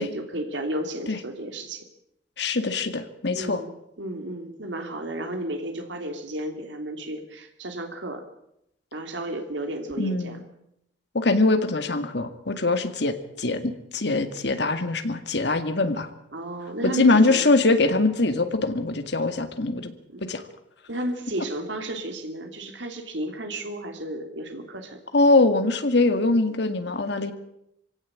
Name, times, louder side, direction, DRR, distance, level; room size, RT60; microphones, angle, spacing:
voice 1, 0.0-1.9 3.3-3.7 4.0-8.2 8.9-10.4 16.3-17.4 20.1-20.2 20.9-25.0, right 1 dB, 80° right, 5 dB, 3.0 m, -33 dB
voice 2, 2.4-3.6 10.0-10.4 11.1-16.1 16.8-19.9 20.2-20.4 25.1-27.3, left 2 dB, 65° left, 8 dB, 2.1 m, -22 dB
24.0 x 17.0 x 8.9 m, 0.80 s
head